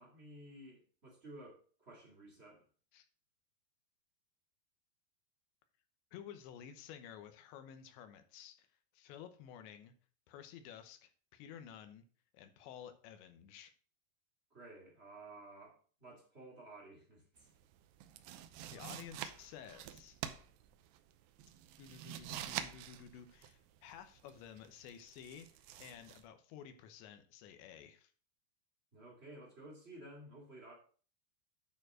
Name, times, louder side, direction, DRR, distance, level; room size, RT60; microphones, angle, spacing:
voice 1, 0.0-2.6 14.5-17.5 28.9-30.7, right 1 dB, 20° right, -2 dB, 1.7 m, -54 dB
voice 2, 6.1-8.7 8.9-9.9 10.3-12.0 12.3-13.7 18.7-20.2 21.8-28.1, left 9 dB, 80° left, 9 dB, 3.1 m, -53 dB
sound 1, 17.4-26.3, right 11 dB, 80° right, 2.6 m, -47 dB
9.4 x 4.5 x 6.1 m, 0.42 s
omnidirectional pair, 5.2 m